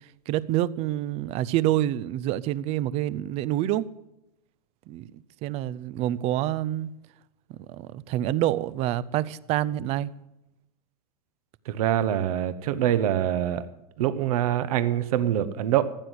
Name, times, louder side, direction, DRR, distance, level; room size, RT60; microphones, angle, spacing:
voice 1, 0.3-3.9 4.9-5.1 5.4-6.9 7.7-10.1, right 13 dB, 30° right, 0.5 m, -27 dB
voice 2, 11.7-13.6 14.0-15.8, right 11 dB, 65° right, 1.0 m, -24 dB
14.5 x 8.1 x 7.9 m
supercardioid pair, 140°, 20 cm